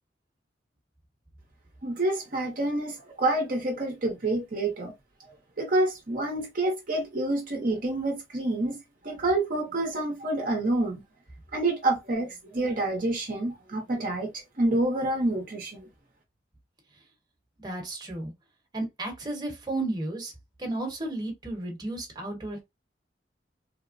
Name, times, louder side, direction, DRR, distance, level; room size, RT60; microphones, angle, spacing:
voice 1, 1.8-4.9 5.6-8.8 9.0-11.0 11.5-15.9, right 2 dB, 50° right, 0.8 m, -28 dB
voice 2, 17.6-18.3 18.7-20.3 20.6-22.6, right 2 dB, 25° right, 1.0 m, -33 dB
3.4 x 2.0 x 2.5 m
head